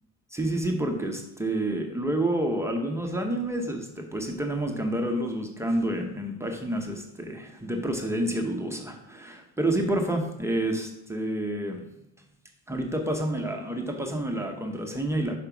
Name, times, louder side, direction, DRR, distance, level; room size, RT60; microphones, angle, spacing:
voice 1, 0.3-11.8 12.7-15.4, right 1 dB, 10° right, 2 dB, 0.7 m, -29 dB
5.2 x 5.0 x 5.8 m, 0.84 s
cardioid pair, 130°, 33 cm